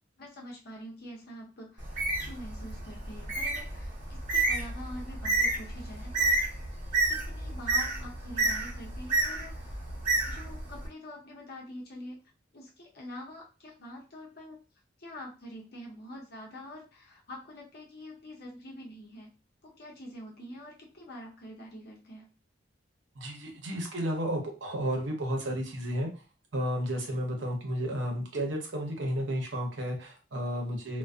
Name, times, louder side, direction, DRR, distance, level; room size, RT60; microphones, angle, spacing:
voice 1, 0.2-6.5 7.1-9.9 10.3-12.2 12.5-14.6 15.0-19.3 19.6-22.3, left 1 dB, 60° left, -1 dB, 0.8 m, -45 dB
Bird, 1.8-10.9, right 2 dB, 45° right, 0.8 m, -30 dB
voice 2, 23.2-26.1 26.5-31.0, equal, 75° right, 1 dB, 0.8 m, -32 dB
2.5 x 2.2 x 2.3 m, 0.33 s
head